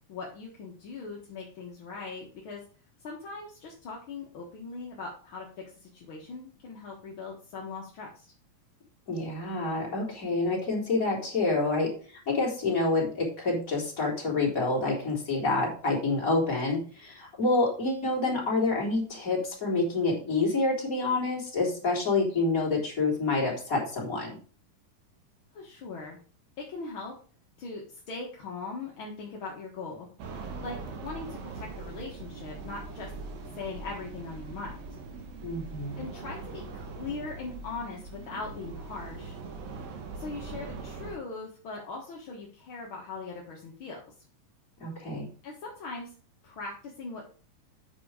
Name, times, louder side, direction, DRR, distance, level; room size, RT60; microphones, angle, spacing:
voice 1, 0.1-2.6 3.0-5.5 5.8-8.3 25.5-26.2 26.7-27.1 27.6-30.1 30.6-30.8 31.0-33.1 33.5-34.7 36.0-39.4 40.1-44.1 45.4-46.1 46.4-47.2, left 4 dB, 50° left, -2 dB, 1.7 m, -40 dB
voice 2, 9.1-11.9 12.3-24.4 35.4-36.0 44.8-45.3, left 3 dB, 25° left, -2 dB, 3.4 m, -27 dB
sound 1, 30.2-41.2, right 4 dB, 80° right, 3.1 m, -41 dB
8.9 x 6.2 x 4.8 m, 0.40 s
omnidirectional pair, 3.9 m